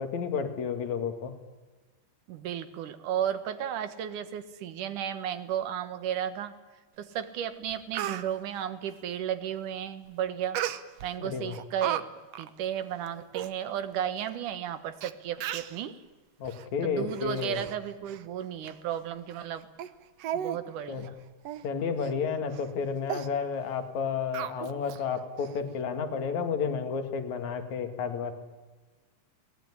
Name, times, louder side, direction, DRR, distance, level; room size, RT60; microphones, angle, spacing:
voice 1, 0.0-1.3 11.2-11.6 16.4-17.6 20.9-21.1 21.6-28.3, left 6 dB, 70° left, 7 dB, 3.4 m, -31 dB
voice 2, 2.3-6.5 7.0-10.6 11.0-12.0 12.4-16.0 16.8-19.7 20.3-21.2, right 9 dB, 85° right, 11 dB, 2.8 m, -34 dB
Speech, 7.2-7.3 7.7-8.2 10.6-11.1 11.5-12.0 12.3-12.5 13.1-13.2 13.3-13.5 14.3-14.4 15.0-15.1 15.4-15.8 16.5-16.7 17.1-17.8 18.1-18.2 18.7-18.8 19.3-19.5 19.8-19.9 20.2-20.6 20.9-21.1 21.5-21.7 22.0-22.1 22.5-22.7 23.1-23.3 24.3-25.0 25.4-25.5, right 11 dB, 65° right, 1.8 m, -35 dB
22.5 x 18.5 x 9.9 m, 1.3 s
omnidirectional pair, 3.5 m